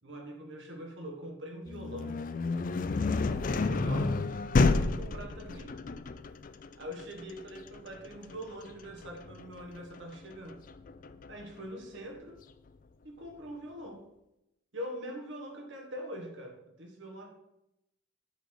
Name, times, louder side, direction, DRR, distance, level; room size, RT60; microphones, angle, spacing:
voice 1, 0.0-2.2 3.2-4.1 4.7-5.8 6.8-10.6 11.3-12.4 13.0-14.0 14.7-17.4, equal, 65° right, 1 dB, 1.5 m, -43 dB
sound 1, 1.7-11.4, left 3 dB, 40° left, 0.4 m, -31 dB
8.0 x 4.1 x 6.4 m, 0.88 s
head